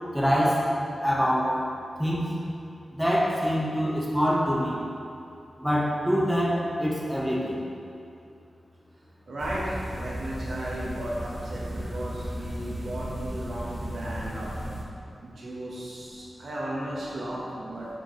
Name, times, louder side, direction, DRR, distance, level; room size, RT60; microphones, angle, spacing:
voice 1, 0.1-0.7 1.0-1.6 2.0-2.3 2.9-4.8 5.6-7.6, equal, ahead, -5 dB, 1.2 m, -25 dB
voice 2, 9.3-14.5 15.2-17.9, right 1 dB, 65° right, -6 dB, 1.1 m, -35 dB
sound 1, 9.4-14.8, equal, 40° right, 0.8 m, -35 dB
9.1 x 4.8 x 3.1 m, 2.6 s
wide cardioid pair, 140°, 0 cm